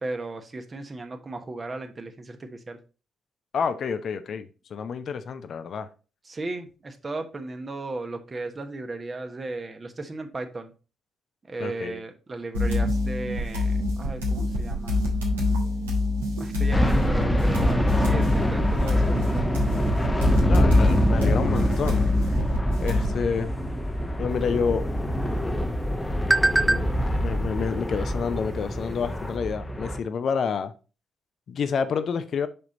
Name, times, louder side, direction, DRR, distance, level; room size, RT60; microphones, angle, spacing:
voice 1, 0.0-2.8 6.2-10.7 11.5-15.0 16.4-19.5, right 2 dB, 30° right, 1.2 m, -36 dB
voice 2, 3.5-5.9 11.6-12.0 20.5-22.3 22.8-23.5 24.2-24.9 26.6-26.9 27.2-30.7 31.5-32.5, left 6 dB, 50° left, 0.6 m, -29 dB
sound 1, 12.5-23.2, left 2 dB, 85° right, 1.9 m, -26 dB
sound 2, 16.7-30.0, equal, 15° left, 0.9 m, -25 dB
sound 3, 24.3-29.4, right 2 dB, 10° right, 0.3 m, -30 dB
5.8 x 5.1 x 4.2 m
figure-of-eight pair, 45°, 0 cm